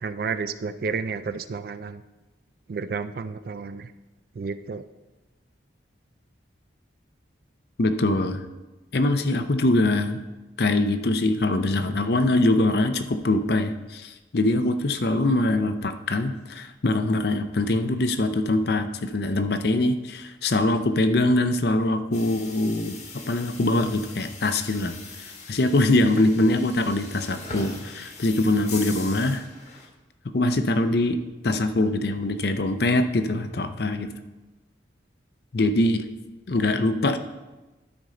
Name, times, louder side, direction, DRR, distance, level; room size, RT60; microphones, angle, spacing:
voice 1, 0.0-2.0 2.7-3.9 4.4-4.8, right 5 dB, 50° right, 12 dB, 0.3 m, -31 dB
voice 2, 7.8-8.4 8.9-10.2 10.6-25.0 25.5-29.4 30.3-31.2 31.4-34.1 35.5-36.0 36.5-37.2, left 2 dB, 55° left, 9 dB, 0.6 m, -23 dB
sound 1, 22.1-29.9, left 3 dB, 35° left, 1.2 m, -41 dB
12.5 x 5.3 x 3.8 m, 1.1 s
head